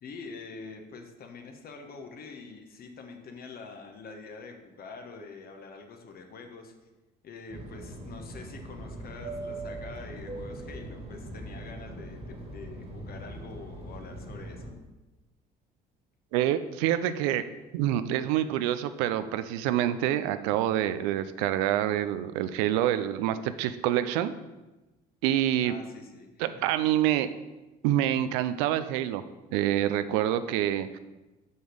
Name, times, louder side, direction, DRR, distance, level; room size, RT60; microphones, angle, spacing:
voice 1, 0.0-6.7 7.2-14.8 25.6-26.6, left 4 dB, 55° left, 4 dB, 1.2 m, -45 dB
Fixed-wing aircraft airplane, 7.5-14.7, right 1 dB, 30° right, 1.7 m, -41 dB
voice 2, 16.3-17.4 17.7-24.3 25.2-25.7 26.4-27.3 27.8-29.2 29.5-31.0, right 12 dB, 85° right, 12 dB, 0.4 m, -26 dB
6.1 x 5.5 x 4.9 m, 1.1 s
supercardioid pair, 70°, 19 cm